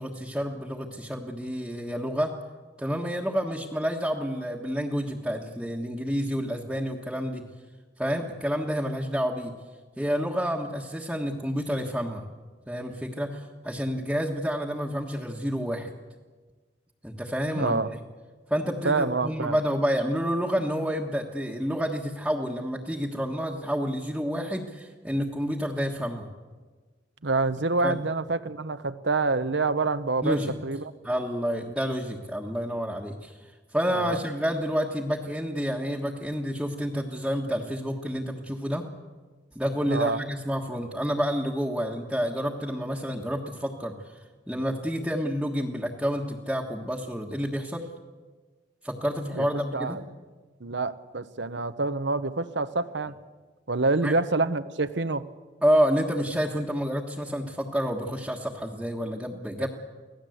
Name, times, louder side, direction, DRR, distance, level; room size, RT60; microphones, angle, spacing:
voice 1, 0.0-2.4 2.8-7.4 8.0-9.5 10.0-12.3 12.7-15.9 17.0-18.0 18.5-26.3 27.8-28.0 30.2-30.5 31.0-38.9 39.5-44.2 44.5-47.9 48.8-50.0 54.0-54.1 55.6-59.7, equal, 5° right, -3 dB, 1.4 m, -29 dB
voice 2, 17.5-17.9 18.8-19.6 27.2-30.4 30.6-30.9 33.9-34.2 39.9-40.2 49.3-49.5 49.7-50.0 50.6-53.1 53.7-55.3 59.6-59.7, right 3 dB, 75° right, 13 dB, 1.1 m, -27 dB
25.0 x 17.5 x 7.9 m, 1.4 s
head